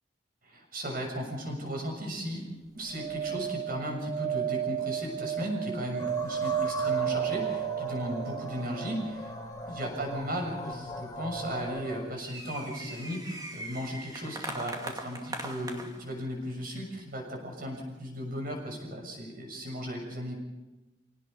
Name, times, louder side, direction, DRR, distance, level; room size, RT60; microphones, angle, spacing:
voice 1, 0.4-2.5 2.7-9.3 9.7-20.4, equal, 50° right, 2 dB, 7.1 m, -36 dB
sound 1, 1.4-1.8 2.1-2.2 2.9-3.0 3.7-4.3 4.8-5.3 5.9-6.8 7.4-7.5 7.8-7.9 8.6-9.2 9.7-9.8 10.4-10.5 10.7-11.1 11.7-16.3 16.9-17.0 17.6-18.0, right 1 dB, 20° right, 2.3 m, -42 dB
sound 2, 2.9-9.1 11.4-11.5 11.6-11.7, right 10 dB, 75° right, 1.5 m, -33 dB
sound 3, 6.0-12.2, left 1 dB, 20° left, 2.0 m, -40 dB
28.0 x 18.0 x 5.5 m, 1.1 s
head